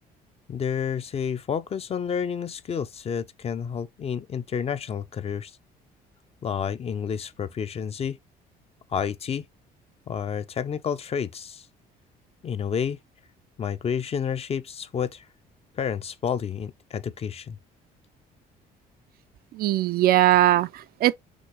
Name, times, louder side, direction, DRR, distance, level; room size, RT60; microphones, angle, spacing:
voice 1, 0.5-5.5 6.4-8.2 8.9-9.4 10.1-11.7 12.4-13.0 13.6-15.3 15.8-17.6, left 7 dB, 35° left, 0.6 m, -30 dB
voice 2, 19.5-21.1, right 14 dB, 60° right, 0.5 m, -20 dB
6.2 x 2.7 x 3.0 m
cardioid pair, 110°, 17 cm